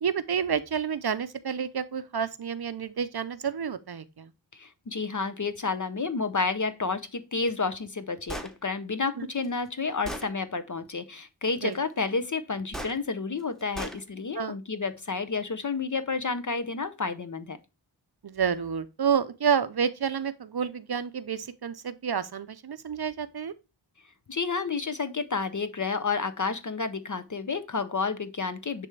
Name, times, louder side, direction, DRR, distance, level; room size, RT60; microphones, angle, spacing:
voice 1, 0.0-4.3 9.2-9.3 11.6-11.7 14.4-14.5 18.2-23.5, right 7 dB, 55° right, 0.6 m, -29 dB
voice 2, 4.5-17.6 24.3-28.9, left 4 dB, 40° left, 0.6 m, -30 dB
Gunshot gunfire, 8.3-8.5 9.4-9.5 10.1-10.3 12.7-13.0 13.8-14.0, equal, ahead, 0.9 m, -35 dB
9.9 x 3.4 x 3.2 m
wide cardioid pair, 70°, 46 cm